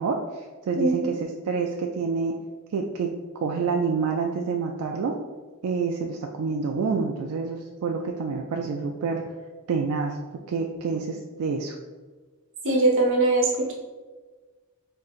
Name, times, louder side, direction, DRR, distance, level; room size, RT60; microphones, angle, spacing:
voice 1, 0.0-2.3 2.7-5.1 5.6-9.2 9.7-10.2 10.5-11.8, right 5 dB, 85° right, 1 dB, 0.4 m, -28 dB
voice 2, 0.7-1.1 12.6-13.7, right 2 dB, 60° right, -1 dB, 0.9 m, -21 dB
4.4 x 3.7 x 2.4 m, 1.3 s
head